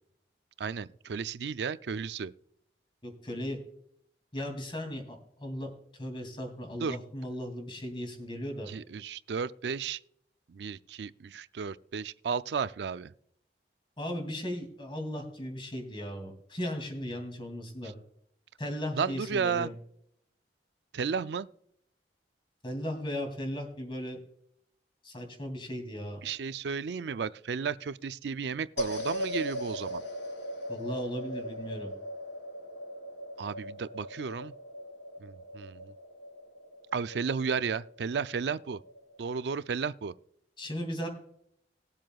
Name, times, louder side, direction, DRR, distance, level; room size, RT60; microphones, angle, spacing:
voice 1, 0.6-2.3 6.8-7.0 8.7-10.0 10.5-13.1 18.9-19.7 20.9-21.5 26.2-30.0 33.4-34.5 35.2-35.9 36.9-38.8 39.2-40.1, right 6 dB, 70° right, 0.4 m, -33 dB
voice 2, 3.0-3.6 4.3-5.7 6.0-8.7 14.0-17.9 18.6-19.7 22.6-24.2 25.0-26.2 30.7-31.9 40.6-41.1, equal, 30° left, 2.7 m, -37 dB
sound 1, 28.8-39.2, equal, 90° left, 2.5 m, -39 dB
20.0 x 7.6 x 2.4 m
head